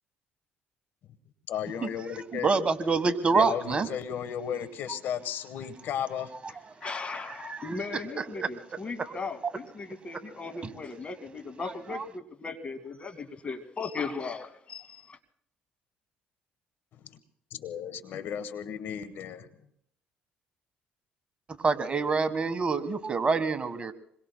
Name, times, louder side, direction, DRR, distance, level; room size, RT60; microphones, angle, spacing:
voice 1, 1.5-2.5 3.3-6.3 17.0-17.2 17.5-19.5, left 8 dB, 70° left, 11 dB, 1.2 m, -34 dB
voice 2, 2.4-3.9 7.5-7.6 8.1-8.5 9.0-9.1 11.9-12.0 21.6-23.9, right 4 dB, 30° right, 10 dB, 1.4 m, -26 dB
voice 3, 6.8-15.2, left 4 dB, 35° left, 8 dB, 2.1 m, -37 dB
28.0 x 22.0 x 2.2 m, 0.70 s
supercardioid pair, 80°, 4 cm